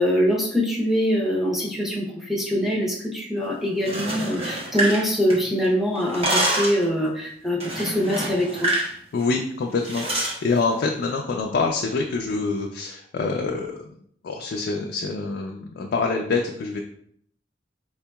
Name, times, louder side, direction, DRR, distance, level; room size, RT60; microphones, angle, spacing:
voice 1, 0.0-8.7, equal, ahead, -3 dB, 0.7 m, -23 dB
sound 1, 3.7-5.7 6.0-6.9 7.6-8.9 9.2-9.4 9.8-10.4, right 1 dB, 35° right, 0.8 m, -26 dB
voice 2, 9.1-13.9 14.2-16.8, left 4 dB, 60° left, 1 dB, 0.3 m, -26 dB
4.5 x 2.8 x 2.2 m, 0.66 s
head